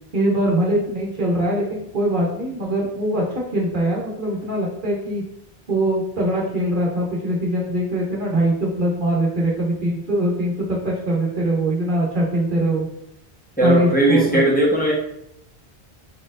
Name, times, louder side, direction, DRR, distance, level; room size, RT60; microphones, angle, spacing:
voice 1, 0.1-5.2 5.7-12.9 13.6-14.4, right 1 dB, 55° right, -3 dB, 0.9 m, -22 dB
voice 2, 13.6-14.9, right 1 dB, 10° left, -5 dB, 0.9 m, -17 dB
4.6 x 4.3 x 2.5 m, 0.76 s
omnidirectional pair, 1.1 m